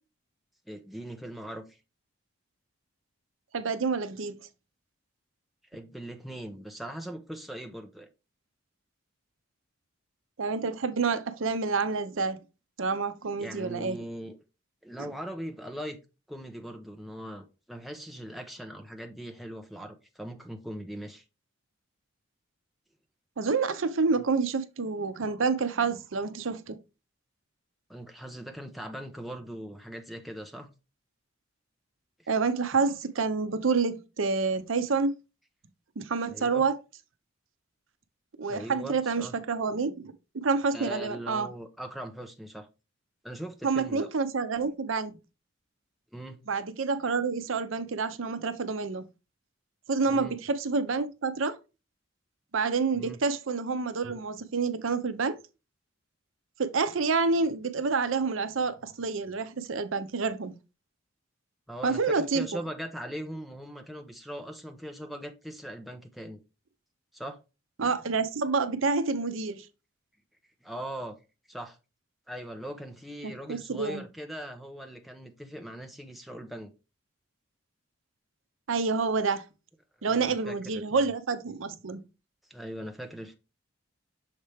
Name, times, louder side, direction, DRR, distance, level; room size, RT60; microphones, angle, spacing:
voice 1, 0.7-1.8 5.7-8.1 13.4-14.4 14.8-16.0 16.3-21.2 24.2-24.3 27.9-30.7 32.2-32.3 36.3-36.7 38.5-39.3 40.7-42.7 43.2-44.1 46.1-46.4 50.1-50.4 52.9-53.2 61.7-66.4 67.1-67.4 70.6-71.1 71.5-71.8 72.3-76.7 80.0-81.1 82.5-83.3, right 1 dB, ahead, 0.7 m, -40 dB
voice 2, 3.5-4.3 10.4-12.4 12.8-14.0 23.4-26.8 32.3-35.1 36.0-36.7 38.4-41.5 43.6-45.2 46.5-49.1 49.9-51.6 52.5-55.4 56.6-60.5 61.8-62.4 67.8-69.6 73.2-74.0 78.7-79.4 80.0-82.0, right 4 dB, 75° right, 0.6 m, -28 dB
6.5 x 4.3 x 3.4 m
head